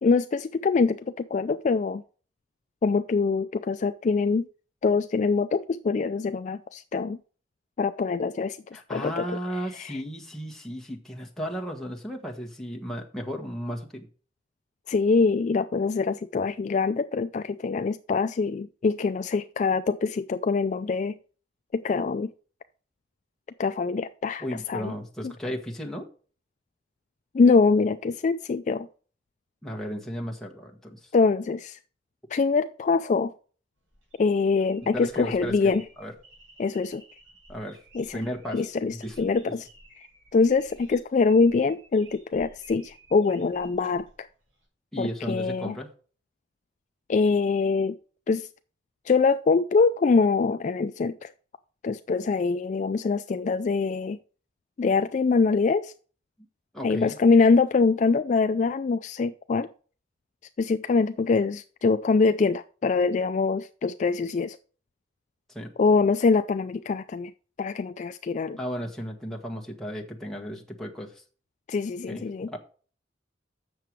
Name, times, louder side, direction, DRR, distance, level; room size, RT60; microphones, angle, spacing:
voice 1, 0.0-2.0 2.8-4.5 4.8-7.2 7.8-8.6 8.9-9.2 9.8-10.0 14.9-21.1 21.7-22.3 23.6-24.9 27.3-28.9 31.1-31.8 32.3-33.3 34.2-35.8 36.6-37.0 37.9-38.2 38.5-39.7 40.3-44.3 45.0-45.8 47.1-47.9 48.3-48.5 49.1-51.3 51.8-54.2 54.8-55.9 56.8-59.7 60.6-64.6 65.8-67.3 67.6-68.6 71.7-72.5, left 4 dB, 40° left, 11 dB, 0.3 m, -24 dB
voice 2, 8.7-14.1 24.4-26.1 29.6-31.1 34.9-36.1 37.5-37.8 38.1-38.6 38.9-39.2 39.4-39.5 44.9-45.9 56.7-57.1 65.5-65.7 68.6-71.2 72.1-72.6, equal, 5° left, -1 dB, 1.5 m, -34 dB
sound 1, 33.8-44.7, right 1 dB, 85° right, 5.5 m, -55 dB
7.7 x 6.8 x 4.6 m, 0.40 s
head